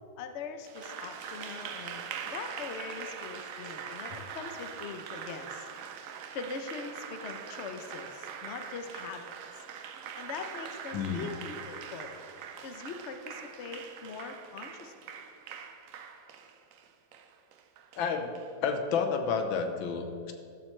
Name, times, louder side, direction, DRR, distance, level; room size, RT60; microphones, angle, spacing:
voice 1, 0.0-5.7 6.3-9.6 10.2-12.1 12.6-15.1, left 5 dB, 70° left, 7 dB, 0.6 m, -42 dB
Applause, 0.6-18.5, right 7 dB, 85° right, 0.7 m, -43 dB
voice 2, 10.9-11.3 17.9-18.3 18.6-20.3, left 6 dB, 90° left, 6 dB, 1.6 m, -30 dB
12.5 x 7.5 x 3.2 m, 2.5 s
omnidirectional pair, 2.1 m